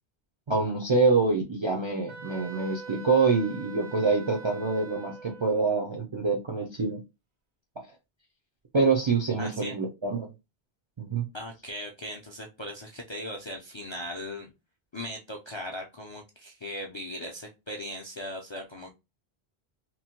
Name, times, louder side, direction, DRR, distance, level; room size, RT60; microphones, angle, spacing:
voice 1, 0.5-7.0 7.8-7.9 8.7-10.3 11.0-11.3, right 4 dB, 45° right, -1 dB, 0.4 m, -26 dB
Wind instrument woodwind instrument, 2.1-5.5, right 4 dB, 70° right, 1.0 m, -43 dB
voice 2, 9.4-9.8 11.3-14.5 14.9-18.9, equal, 45° left, 1 dB, 0.3 m, -38 dB
2.9 x 2.1 x 2.8 m, 0.24 s
omnidirectional pair, 1.0 m